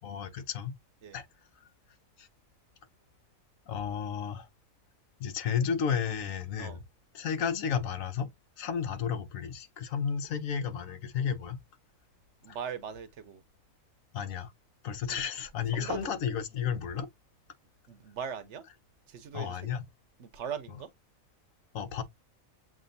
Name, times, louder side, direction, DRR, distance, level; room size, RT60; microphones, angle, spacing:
voice 1, 0.0-0.7 1.1-1.2 2.2-2.3 3.7-4.5 5.2-6.8 7.1-8.3 8.6-11.6 14.1-14.5 14.8-17.1 19.3-19.9 21.7-22.0, left 7 dB, 80° left, 1.2 m, -32 dB
voice 2, 12.4-13.4 15.1-15.2 15.7-16.1 17.9-18.6 19.1-19.7 20.2-20.9, right 7 dB, 65° right, 0.9 m, -40 dB
7.5 x 2.5 x 2.5 m
omnidirectional pair, 1.4 m